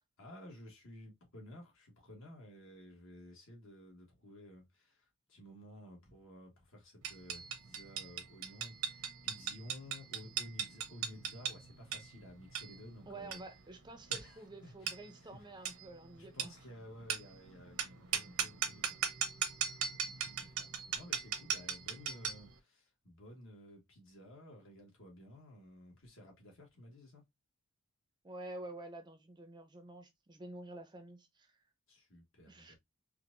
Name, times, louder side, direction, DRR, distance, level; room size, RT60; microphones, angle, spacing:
voice 1, 0.2-13.4 14.1-15.8 16.2-19.0 19.6-19.8 20.0-27.2 31.9-32.8, left 1 dB, 65° left, 1.6 m, -54 dB
sound 1, 7.0-22.5, right 8 dB, 85° right, 0.8 m, -39 dB
voice 2, 13.1-16.5 28.2-31.6 32.5-32.7, right 2 dB, 20° right, 0.5 m, -49 dB
4.5 x 2.5 x 2.5 m
head